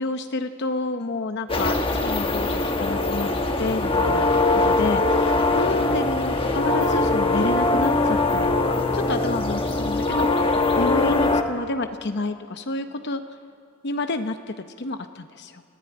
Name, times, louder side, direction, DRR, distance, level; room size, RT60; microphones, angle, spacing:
voice 1, 0.0-3.3 3.6-10.3 10.8-13.4 13.8-15.6, left 2 dB, 55° left, 8 dB, 0.8 m, -29 dB
sound 1, 1.5-11.4, left 2 dB, 25° left, 1.3 m, -22 dB
29.5 x 15.0 x 8.9 m, 2.6 s
head